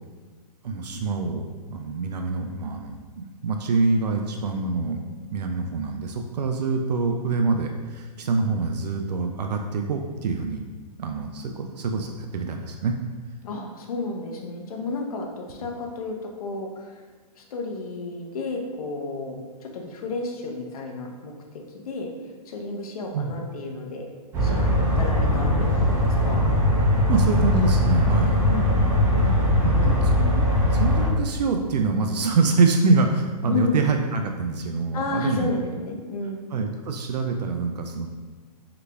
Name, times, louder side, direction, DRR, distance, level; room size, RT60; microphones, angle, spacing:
voice 1, 0.6-10.6 11.0-12.9 23.1-23.3 27.1-28.4 29.2-35.5 36.5-38.1, right 4 dB, 80° right, 4 dB, 0.4 m, -25 dB
voice 2, 13.4-17.0 17.4-22.1 22.5-24.0 24.4-26.4 28.5-30.0 33.5-33.9 34.9-36.5, left 3 dB, 65° left, 2 dB, 0.7 m, -32 dB
sound 1, 24.3-31.1, left 1 dB, 15° right, 0.4 m, -20 dB
3.9 x 3.3 x 2.2 m, 1.4 s
hypercardioid pair, 140°, 21 cm